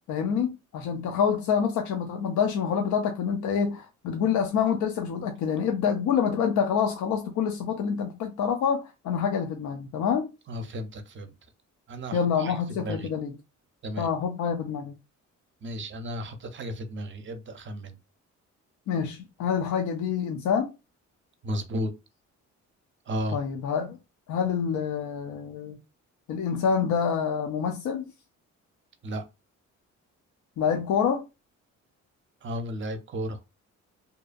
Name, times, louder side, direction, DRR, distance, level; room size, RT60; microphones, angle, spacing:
voice 1, 0.1-10.3 12.1-13.3 14.0-14.9 18.9-20.7 23.3-24.0 24.3-25.8 26.3-28.1 30.6-31.2, left 7 dB, 70° left, 0.5 m, -27 dB
voice 2, 10.5-11.3 11.9-13.1 13.8-14.1 15.6-18.0 21.4-21.9 23.1-23.4 29.0-29.2 32.4-33.4, equal, 40° right, 0.6 m, -34 dB
2.7 x 2.2 x 2.5 m
cardioid pair, 90°, 30 cm